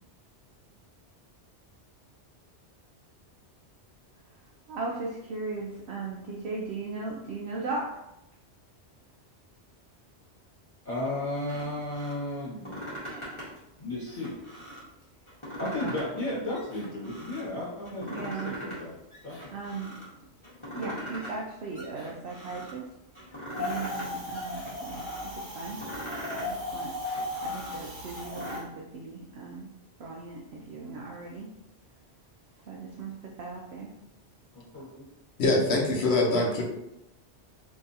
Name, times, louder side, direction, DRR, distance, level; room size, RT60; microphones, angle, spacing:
voice 1, 4.7-7.9 15.6-15.9 18.1-18.5 19.5-19.9 20.7-22.9 23.6-25.1 25.3-25.8 26.3-26.9 27.4-29.7 30.0-31.5 32.6-33.9, right 3 dB, 70° right, -3 dB, 0.8 m, -37 dB
voice 2, 10.8-12.8 13.8-14.4 15.6-19.0 19.2-19.5 34.5-35.1, left 1 dB, 45° left, -8 dB, 1.4 m, -34 dB
sound 1, 11.4-12.1 12.5-13.6 14.0-14.9 15.3-16.2 16.5-17.4 17.9-18.8 19.1-20.1 20.4-21.4 21.7-22.7 23.1-24.1 24.3-25.2 25.6-26.5 26.9-28.6, equal, 25° left, 1.2 m, -41 dB
Wind, 23.5-28.6, left 2 dB, 85° right, 1.1 m, -36 dB
voice 3, 35.4-36.6, left 2 dB, 70° left, -1 dB, 1.0 m, -24 dB
3.6 x 3.0 x 2.7 m, 0.86 s
omnidirectional pair, 1.2 m